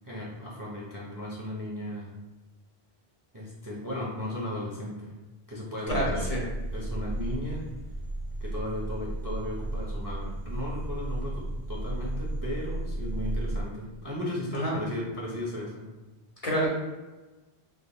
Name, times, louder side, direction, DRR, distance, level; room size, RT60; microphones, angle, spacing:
voice 1, 0.0-2.1 3.3-5.1 5.5-6.2 6.7-7.7 8.4-15.8, left 1 dB, 25° right, -5 dB, 0.6 m, -36 dB
voice 2, 5.9-6.4 14.5-14.7 16.4-16.7, equal, 40° left, -4 dB, 0.8 m, -27 dB
sound 1, 5.9-13.6, right 1 dB, 55° right, 1.7 m, -33 dB
3.8 x 3.6 x 2.2 m, 1.2 s
omnidirectional pair, 1.1 m